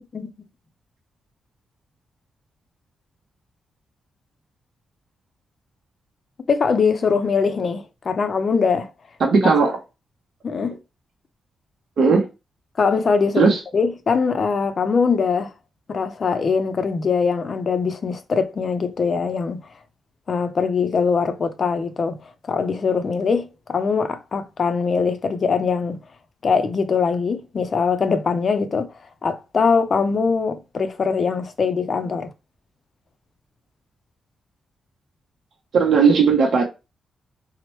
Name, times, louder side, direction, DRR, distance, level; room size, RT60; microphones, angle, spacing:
voice 1, 6.5-8.9 9.4-9.5 10.4-10.8 12.8-15.5 15.9-19.6 20.3-26.0 26.4-28.9 29.2-32.3, left 5 dB, 40° left, 0.4 m, -22 dB
voice 2, 9.2-9.8 12.0-12.3 13.4-13.6 35.7-36.7, right 5 dB, 55° right, 0.7 m, -16 dB
2.9 x 2.0 x 2.9 m
wide cardioid pair, 150°, 0 cm